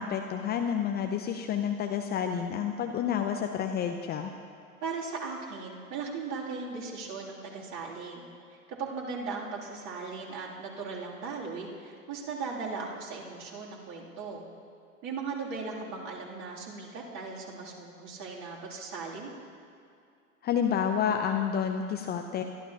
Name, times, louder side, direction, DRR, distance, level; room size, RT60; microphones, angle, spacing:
voice 1, 0.0-4.3 20.4-22.4, left 8 dB, 20° left, 5 dB, 0.6 m, -29 dB
voice 2, 4.8-8.2 8.7-14.4 15.0-19.3, right 4 dB, 40° right, -4 dB, 3.1 m, -38 dB
22.5 x 13.5 x 2.9 m, 2.4 s
figure-of-eight pair, 90°, 45 cm